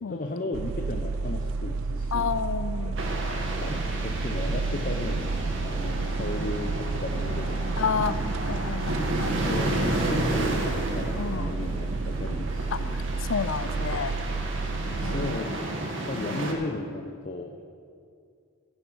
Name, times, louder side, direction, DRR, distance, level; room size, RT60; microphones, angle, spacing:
voice 1, 0.1-2.3 3.6-5.3 5.6-7.9 9.3-13.0 15.0-15.7 16.1-17.5, left 2 dB, 40° left, 3 dB, 0.7 m, -35 dB
sound 1, 0.5-15.3, right 3 dB, 85° right, 0.4 m, -31 dB
voice 2, 2.1-3.0 7.8-8.2 8.4-9.3 9.7-9.8 10.5-10.7 11.2-11.5 12.7-13.0 13.3-14.2 15.0-15.6 16.2-16.5, left 6 dB, 70° left, 14 dB, 0.5 m, -31 dB
sound 2, 2.7-16.6, right 1 dB, 30° right, 1.3 m, -43 dB
sound 3, 3.0-16.5, right 1 dB, 65° right, 1.9 m, -32 dB
14.5 x 9.6 x 6.2 m, 2.4 s
head